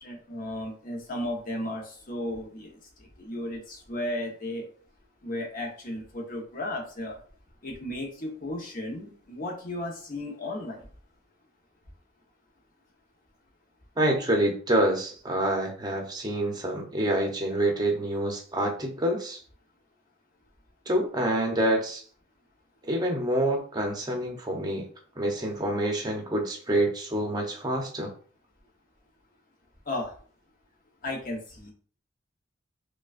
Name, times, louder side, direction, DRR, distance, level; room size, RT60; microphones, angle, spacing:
voice 1, 0.0-4.7 5.2-7.2 7.6-10.9 29.9-30.1 31.0-31.7, left 1 dB, 45° left, 1 dB, 1.0 m, -35 dB
voice 2, 14.0-19.4 20.9-22.0 22.8-24.9 25.2-28.1, right 1 dB, 20° right, 1 dB, 0.7 m, -27 dB
5.1 x 2.3 x 2.5 m, 0.44 s
head